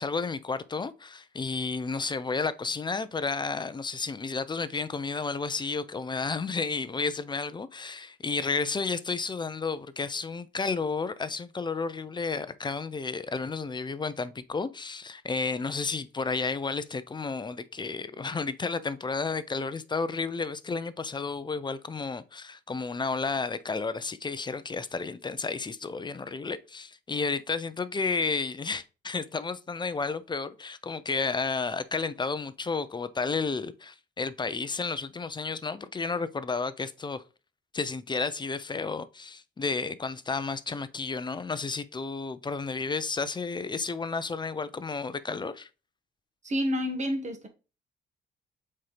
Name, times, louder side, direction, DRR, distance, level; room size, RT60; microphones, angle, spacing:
voice 1, 0.0-37.2 37.7-45.7, left 4 dB, 20° left, 0.6 m, -32 dB
voice 2, 46.4-47.5, equal, 35° right, 1.6 m, -29 dB
7.5 x 4.4 x 3.3 m
cardioid pair, 90°, 20 cm